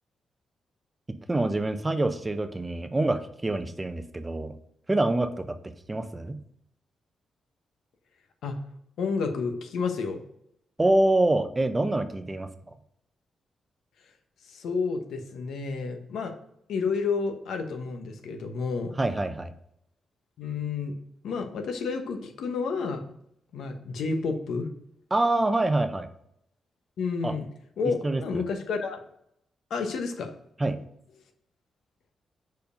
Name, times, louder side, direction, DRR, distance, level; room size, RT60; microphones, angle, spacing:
voice 1, 1.3-4.5 4.9-5.6 5.9-6.4 10.8-12.5 19.0-19.5 25.1-26.1 27.2-27.3 27.9-28.4 30.6-30.8, right 2 dB, 15° right, 9 dB, 0.5 m, -26 dB
voice 2, 9.0-10.2 14.5-16.3 16.7-18.9 20.4-20.9 21.2-23.1 23.5-24.7 27.0-27.5 27.8-29.0 29.7-30.3, left 4 dB, 85° left, 6 dB, 1.0 m, -30 dB
5.2 x 4.7 x 5.2 m, 0.74 s
wide cardioid pair, 150°, 0 cm